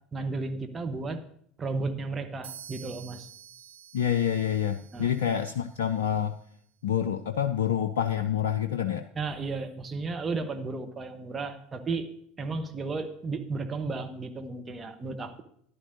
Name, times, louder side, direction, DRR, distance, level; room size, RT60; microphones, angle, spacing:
voice 1, 0.1-1.2 1.6-3.3 4.9-5.1 9.1-12.1 12.4-15.4, right 3 dB, 20° right, 6 dB, 1.1 m, -33 dB
sound 1, 2.4-6.2, right 8 dB, 65° right, 0.9 m, -49 dB
voice 2, 3.9-6.3 6.8-9.1, left 9 dB, 70° left, 10 dB, 0.4 m, -27 dB
14.0 x 11.0 x 2.7 m, 0.67 s
figure-of-eight pair, 70°, 0 cm